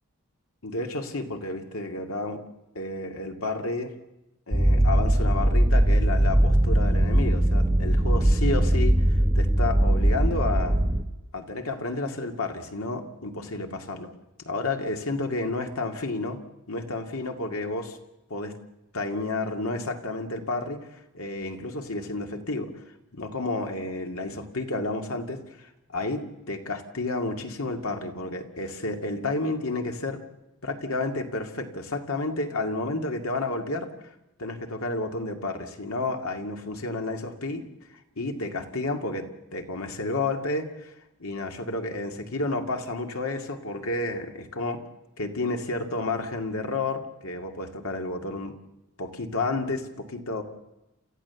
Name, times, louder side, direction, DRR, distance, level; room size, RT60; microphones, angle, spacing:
voice 1, 0.6-2.4 2.7-3.9 4.5-10.8 11.3-14.1 14.4-16.4 16.7-18.0 18.3-18.5 18.9-20.9 21.1-22.7 23.1-30.2 30.6-34.1 34.4-37.6 38.2-40.9 41.2-44.8 45.2-48.5 49.0-50.4, left 2 dB, 90° left, 4 dB, 2.2 m, -31 dB
sound 1, 4.5-11.0, right 1 dB, 15° right, 1.1 m, -21 dB
29.0 x 14.5 x 7.0 m, 0.93 s
head